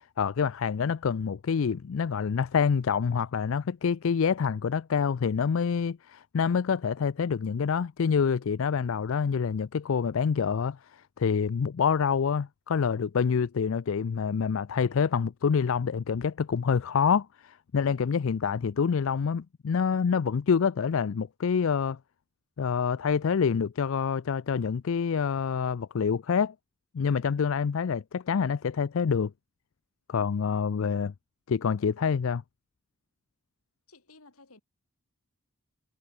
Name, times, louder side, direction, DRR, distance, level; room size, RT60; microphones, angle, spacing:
voice 1, 0.0-22.0 22.6-26.5 26.9-29.3 30.1-31.1 31.5-32.4, left 6 dB, 65° left, 0.4 m, -27 dB
voice 2, 33.9-34.6, left 3 dB, 80° left, 3.6 m, -55 dB
head